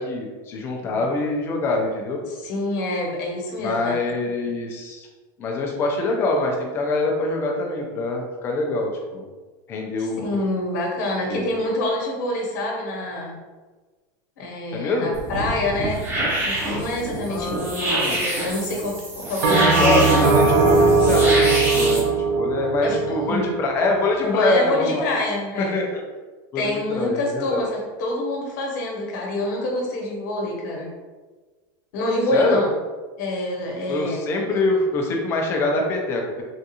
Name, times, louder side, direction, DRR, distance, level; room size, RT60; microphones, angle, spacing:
voice 1, 0.0-2.2 3.6-5.1 5.4-9.2 9.7-10.4 11.3-11.5 14.7-15.1 17.3-18.2 19.5-22.0 22.3-25.0 25.6-25.9 26.5-27.7 32.3-32.6 33.9-36.4, left 2 dB, 25° left, 1 dB, 0.4 m, -24 dB
voice 2, 2.3-3.9 10.0-13.4 14.4-16.0 16.4-20.0 22.8-23.5 24.2-25.9 26.5-30.9 31.9-32.7 33.2-34.2 34.5-34.6, left 1 dB, 65° left, -1 dB, 1.0 m, -26 dB
sound 1, 15.1-22.0, right 1 dB, 20° right, 0.7 m, -26 dB
Bell, 19.4-24.0, right 3 dB, 85° right, 0.5 m, -19 dB
3.6 x 2.4 x 2.7 m, 1.3 s
supercardioid pair, 175°, 10 cm